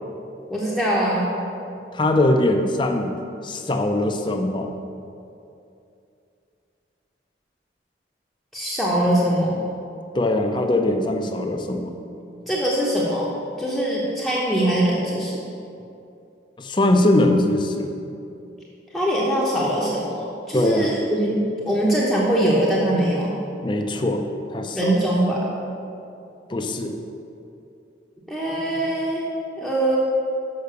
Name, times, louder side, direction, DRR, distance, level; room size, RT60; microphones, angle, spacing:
voice 1, 0.5-1.3 8.5-9.6 12.5-13.3 13.6-15.3 18.9-23.3 24.7-25.5 28.3-29.2 29.6-30.0, right 1 dB, ahead, -6 dB, 0.9 m, -22 dB
voice 2, 1.9-3.1 3.4-4.7 10.1-11.9 16.6-17.9 20.5-20.9 23.6-24.2 24.5-24.9 26.5-26.9, left 1 dB, 25° left, 4 dB, 0.5 m, -21 dB
6.6 x 5.6 x 6.7 m, 2.7 s
head